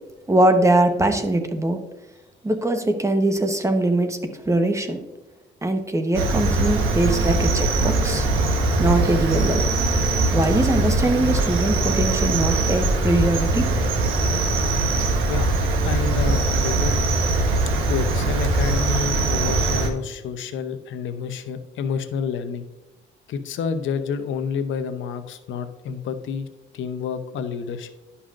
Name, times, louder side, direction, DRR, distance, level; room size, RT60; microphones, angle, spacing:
voice 1, 0.3-1.8 2.4-5.0 5.6-8.3 8.8-9.6 10.3-13.7, right 1 dB, 15° right, 6 dB, 1.0 m, -21 dB
Cricket, 6.1-19.9, right 2 dB, 90° right, 1.2 m, -21 dB
voice 2, 15.3-17.0 17.9-22.6 23.3-26.5 26.7-27.9, left 6 dB, 75° left, 9 dB, 0.7 m, -29 dB
11.5 x 5.6 x 2.5 m, 1.1 s
cardioid pair, 90°, 20 cm